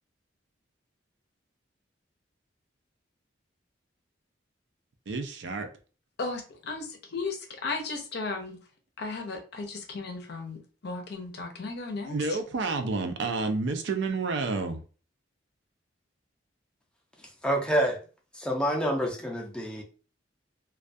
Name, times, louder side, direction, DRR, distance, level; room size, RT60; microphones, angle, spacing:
voice 1, 5.1-5.7 12.1-14.8, right 3 dB, 65° right, 0.4 m, -29 dB
voice 2, 6.2-8.6 9.0-12.4, left 3 dB, 60° left, 0.6 m, -35 dB
voice 3, 17.4-18.0 18.4-19.8, right 1 dB, 5° left, 0.5 m, -27 dB
2.3 x 2.2 x 2.5 m
head